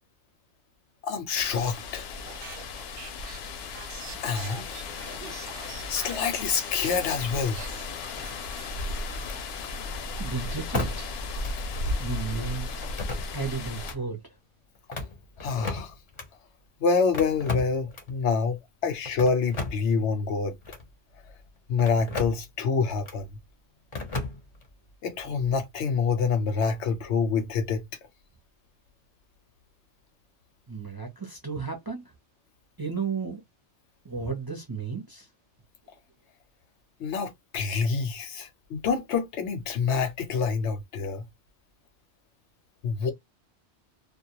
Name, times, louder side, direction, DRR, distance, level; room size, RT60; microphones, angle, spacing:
voice 1, 1.0-2.0 4.2-4.7 5.9-7.6 15.4-15.9 16.8-20.5 21.7-23.3 25.0-27.9 37.0-41.2 42.8-43.1, left 5 dB, 90° left, 1.0 m, -27 dB
Leaves in wind, 1.3-13.9, left 3 dB, 70° left, 0.8 m, -35 dB
sound 1, 2.3-7.3 7.5-9.2, right 8 dB, 65° right, 0.7 m, -44 dB
sound 2, 8.2-8.7 9.2-9.4 10.7-11.2 11.4-11.5 12.8-13.5 13.8-14.0 14.7-16.3 17.1-18.2 19.0-19.9 20.6-20.9 21.8-22.4 23.0-23.2 23.9-24.7, left 3 dB, 35° left, 0.5 m, -35 dB
voice 2, 10.2-11.1 12.0-12.9 13.3-14.3 30.7-32.1 32.8-33.4 34.0-35.3, right 4 dB, 30° right, 0.5 m, -33 dB
2.2 x 2.1 x 2.7 m
omnidirectional pair, 1.1 m